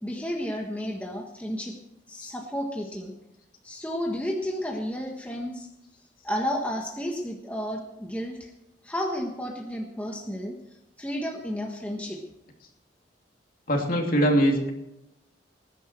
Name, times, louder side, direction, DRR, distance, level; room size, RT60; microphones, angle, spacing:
voice 1, 0.0-1.8 2.1-3.1 3.6-5.7 6.2-8.5 8.8-10.6 11.0-12.2, equal, 10° left, 0 dB, 1.4 m, -32 dB
voice 2, 13.7-14.7, right 1 dB, 50° left, 1 dB, 2.9 m, -22 dB
20.0 x 10.0 x 4.6 m, 0.87 s
head